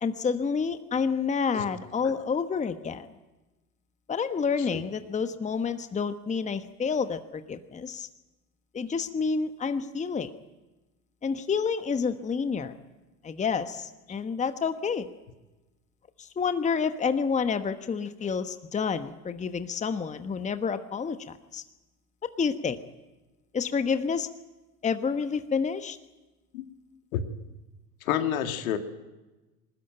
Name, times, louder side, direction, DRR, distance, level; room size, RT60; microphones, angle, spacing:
voice 1, 0.0-3.1 4.1-8.1 8.7-10.3 11.2-12.7 13.2-15.1 16.2-21.6 22.4-22.8 23.5-24.3 24.8-26.0, left 5 dB, 15° left, 10 dB, 1.1 m, -29 dB
voice 2, 28.0-28.8, left 10 dB, 70° left, 7 dB, 2.3 m, -29 dB
21.0 x 20.0 x 9.1 m, 1.1 s
hypercardioid pair, 80°, 43 cm